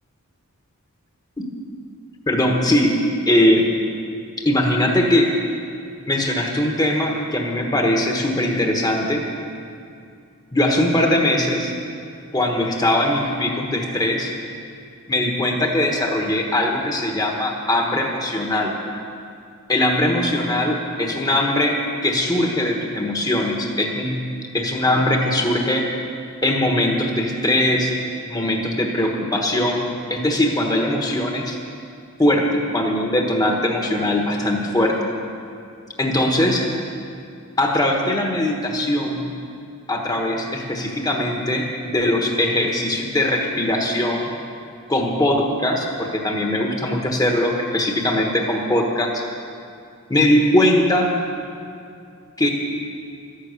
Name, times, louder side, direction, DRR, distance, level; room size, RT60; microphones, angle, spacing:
voice 1, 2.3-3.0 3.3-3.7 4.4-5.3 6.1-9.3 10.5-11.7 12.3-14.3 15.1-18.7 19.7-24.2 24.5-25.9 26.4-27.9 28.3-31.6 32.2-35.0 36.0-36.7 37.6-39.3 39.9-44.3 44.9-49.2 50.1-51.2 52.4-52.5, left 1 dB, 15° left, 1 dB, 1.3 m, -20 dB
13.0 x 11.5 x 8.2 m, 2.4 s
head